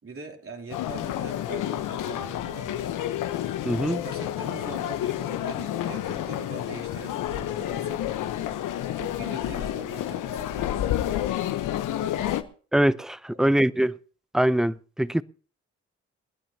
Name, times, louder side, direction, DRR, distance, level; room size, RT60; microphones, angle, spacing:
voice 1, 0.0-3.1 4.0-8.3 9.0-11.2 13.4-13.5, right 4 dB, 45° right, 3.5 m, -42 dB
sound 1, 0.7-12.4, left 12 dB, 80° left, 1.0 m, -30 dB
voice 2, 3.6-4.0 12.7-14.0 14.3-15.2, right 1 dB, ahead, 0.6 m, -23 dB
28.0 x 10.0 x 2.9 m
supercardioid pair, 45°, 31 cm